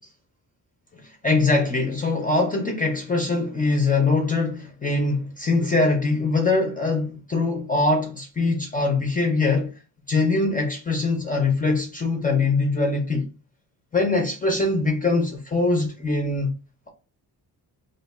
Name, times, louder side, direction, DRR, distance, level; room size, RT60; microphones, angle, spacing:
voice 1, 0.9-9.7 10.1-13.3 13.9-16.5, left 3 dB, 25° left, 0.4 m, -22 dB
2.6 x 2.2 x 4.0 m
wide cardioid pair, 175°, 38 cm